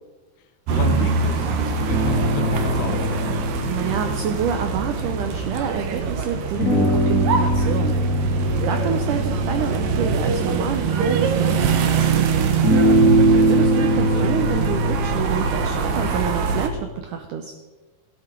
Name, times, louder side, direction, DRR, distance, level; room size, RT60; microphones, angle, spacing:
voice 1, 0.7-3.2 8.4-8.7, left 7 dB, 80° left, 7 dB, 3.1 m, -32 dB
sound 1, 0.7-16.7, right 5 dB, 70° right, 2.5 m, -24 dB
sound 2, 1.9-5.8 6.6-11.7 12.6-16.8, right 1 dB, 60° left, 0.8 m, -22 dB
voice 2, 3.7-12.5 13.3-17.5, right 7 dB, 85° right, 6 dB, 1.8 m, -28 dB
16.5 x 11.5 x 4.6 m, 1.2 s
omnidirectional pair, 4.8 m